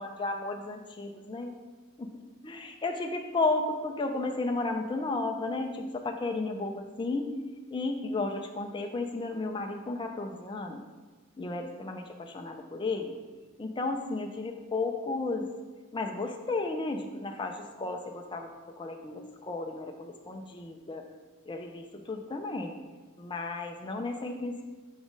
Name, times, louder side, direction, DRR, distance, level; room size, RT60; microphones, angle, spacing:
voice 1, 0.0-1.6 2.0-2.1 2.4-7.3 7.7-10.8 11.4-13.1 13.6-15.5 15.9-18.5 18.8-21.0 21.5-22.7 23.2-24.6, left 3 dB, 20° left, 3 dB, 0.5 m, -33 dB
5.9 x 4.1 x 5.2 m, 1.3 s
head